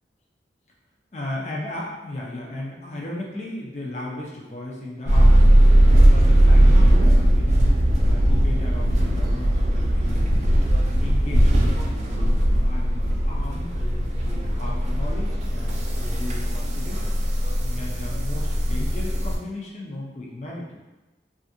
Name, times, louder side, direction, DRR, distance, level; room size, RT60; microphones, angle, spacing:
voice 1, 1.1-5.5 6.0-7.6 8.0-10.4 10.9-13.8 14.2-17.1 17.6-20.7, left 1 dB, 40° left, -3 dB, 0.4 m, -36 dB
sound 1, 5.1-19.4, right 1 dB, 40° right, 0.3 m, -18 dB
2.5 x 2.4 x 2.6 m, 1.1 s
head